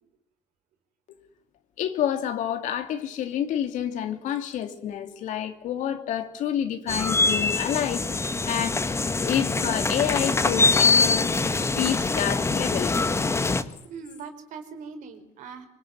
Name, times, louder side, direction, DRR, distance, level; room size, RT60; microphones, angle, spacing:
voice 1, 1.8-8.8 9.2-11.4 11.7-12.9, left 10 dB, 80° left, 3.1 m, -29 dB
sound 1, 6.9-13.6, left 3 dB, 20° left, 1.7 m, -24 dB
voice 2, 13.8-15.7, right 5 dB, 80° right, 4.8 m, -40 dB
25.0 x 24.0 x 9.6 m
cardioid pair, 120°, 13 cm